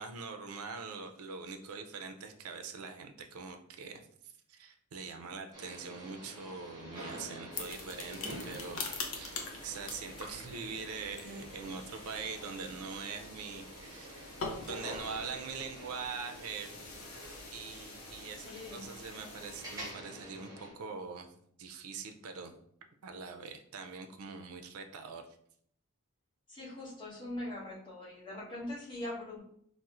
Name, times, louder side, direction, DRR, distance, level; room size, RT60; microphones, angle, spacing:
voice 1, 0.0-4.1 4.5-8.8 9.1-14.2 14.6-16.8 17.5-21.3 21.6-22.6 23.0-25.3, right 5 dB, 80° right, 6 dB, 0.4 m, -43 dB
sound 1, 5.5-20.7, right 1 dB, 20° right, 0.8 m, -48 dB
sound 2, 7.5-19.9, left 4 dB, 70° left, 0.5 m, -45 dB
voice 2, 18.4-18.9 26.5-29.4, left 1 dB, 25° left, -7 dB, 1.1 m, -42 dB
4.1 x 2.0 x 2.4 m, 0.66 s
head